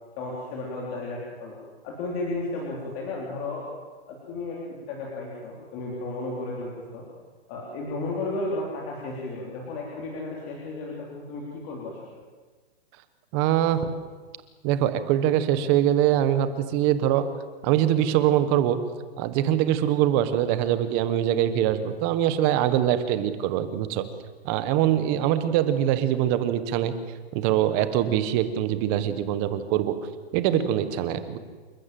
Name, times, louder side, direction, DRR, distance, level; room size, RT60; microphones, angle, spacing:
voice 1, 0.2-1.6 1.8-3.7 4.1-7.1 7.5-12.0, left 2 dB, 25° left, -3 dB, 3.8 m, -33 dB
voice 2, 13.3-13.9 14.6-17.3 17.6-18.8 19.2-24.0 24.4-26.9 27.3-30.0 30.3-31.4, right 11 dB, 25° right, 12 dB, 1.2 m, -23 dB
29.0 x 13.5 x 7.7 m, 1.4 s
hypercardioid pair, 165°, 31 cm